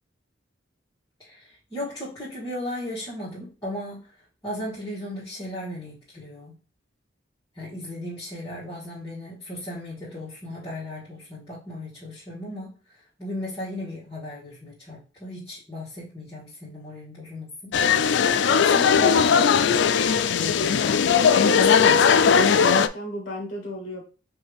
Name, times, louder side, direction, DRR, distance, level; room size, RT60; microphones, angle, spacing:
voice 1, 1.2-4.1 4.4-6.5 7.5-12.7 13.2-17.7 18.6-19.6, left 1 dB, 20° left, -9 dB, 1.7 m, -35 dB
sound 1, 17.7-22.9, left 6 dB, 70° left, 0.4 m, -18 dB
voice 2, 21.4-24.0, equal, 45° left, 0 dB, 1.2 m, -34 dB
5.4 x 2.7 x 3.3 m, 0.37 s
head